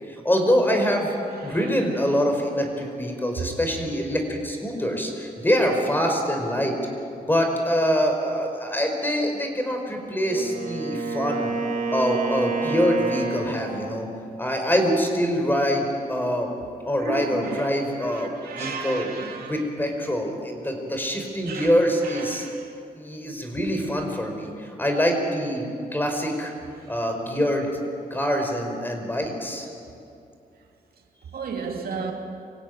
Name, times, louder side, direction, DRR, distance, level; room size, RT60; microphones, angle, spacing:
voice 1, 0.2-1.1 1.4-6.7 7.2-11.5 11.9-14.1 14.4-16.5 16.8-19.1 19.4-22.5 23.0-25.6 25.9-26.5 26.9-27.7 28.1-29.7, equal, 15° left, 5.0 m, -24 dB
Wind instrument woodwind instrument, 10.1-14.0, right 4 dB, 60° right, 6.2 m, -29 dB
voice 2, 17.0-17.7 18.0-19.6 21.5-21.7 22.3-22.6 31.3-32.1, right 5 dB, 80° right, 2.6 m, -33 dB
25.0 x 16.5 x 9.6 m
cardioid pair, 90°, 15 cm